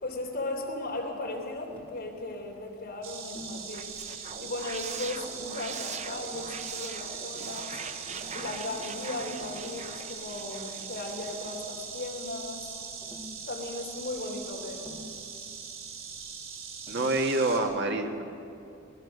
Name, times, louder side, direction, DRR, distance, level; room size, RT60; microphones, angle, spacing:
voice 1, 0.0-3.9 4.2-7.8 8.3-12.7 13.5-14.9, left 2 dB, 50° left, 0 dB, 3.5 m, -37 dB
Tap, 1.7-2.0 3.4-3.7 4.7-5.3 6.3-7.1 8.1-8.4 9.1-9.7 10.8-10.9 11.2-11.7 13.0-13.4 14.8-15.2 16.9-17.2, equal, 10° left, 2.5 m, -48 dB
Insect, 3.0-17.6, right 6 dB, 85° right, 3.0 m, -41 dB
sound 1, 3.5-11.6, right 5 dB, 35° right, 0.7 m, -42 dB
voice 2, 16.9-18.2, right 2 dB, 55° right, 3 dB, 1.7 m, -27 dB
21.0 x 19.5 x 6.7 m, 2.6 s
head